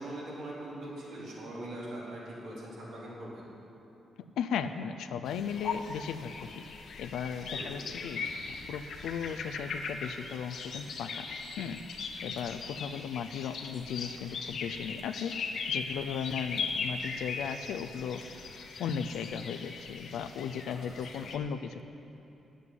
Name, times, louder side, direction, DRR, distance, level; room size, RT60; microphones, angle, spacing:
voice 1, 0.0-3.5 7.5-7.7 20.6-21.3, right 1 dB, 85° right, -6 dB, 3.5 m, -42 dB
voice 2, 4.4-6.5 7.0-8.2 8.7-11.3 11.6-11.8 12.2-15.3 15.7-18.2 18.8-21.9, left 7 dB, 90° left, 8 dB, 0.5 m, -36 dB
sound 1, 5.3-21.4, left 5 dB, 70° left, 1.0 m, -39 dB
9.6 x 8.3 x 9.2 m, 2.9 s
cardioid pair, 80°, 0 cm